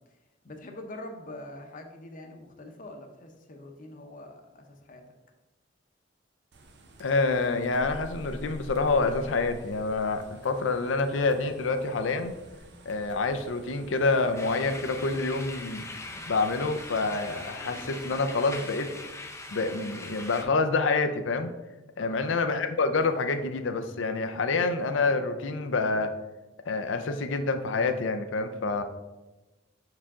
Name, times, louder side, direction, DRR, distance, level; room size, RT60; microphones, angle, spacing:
voice 1, 0.4-5.0 22.0-22.2, left 1 dB, 45° left, 4 dB, 0.8 m, -44 dB
sound 1, 6.5-17.5, right 1 dB, 65° right, 0.7 m, -48 dB
voice 2, 7.0-12.3 12.9-15.8 16.3-18.9 19.5-21.5 22.0-26.1 26.7-28.8, left 3 dB, 85° left, 8 dB, 0.5 m, -27 dB
sound 2, 13.8-15.4 16.8-18.4, equal, 15° right, 0.9 m, -48 dB
sound 3, 14.4-20.4, left 2 dB, 15° left, 0.5 m, -41 dB
5.7 x 4.7 x 3.6 m, 1.1 s
head